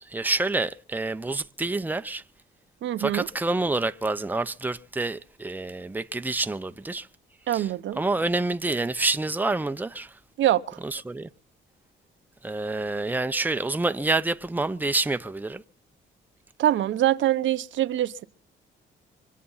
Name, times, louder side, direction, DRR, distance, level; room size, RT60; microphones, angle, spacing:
voice 1, 0.1-2.2 3.0-7.1 7.5-10.1 10.8-11.3 12.4-15.6, right 2 dB, 10° right, 0.8 m, -28 dB
voice 2, 2.8-3.3 7.5-8.0 10.4-10.8 16.6-18.2, right 13 dB, 75° right, 0.9 m, -24 dB
25.0 x 8.5 x 5.6 m
cardioid pair, 90°, 20 cm